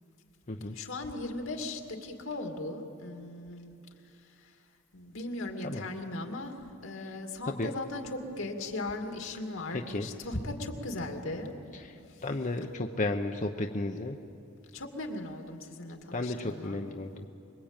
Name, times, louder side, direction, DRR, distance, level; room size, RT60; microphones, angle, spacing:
voice 1, 0.8-3.7 4.9-6.5 6.8-11.6 14.7-16.9, left 2 dB, 80° left, 4 dB, 2.5 m, -38 dB
voice 2, 9.7-10.1 11.7-11.9 12.2-14.2 16.1-17.3, left 2 dB, 40° left, 4 dB, 0.9 m, -33 dB
26.0 x 22.0 x 9.0 m, 2.7 s
head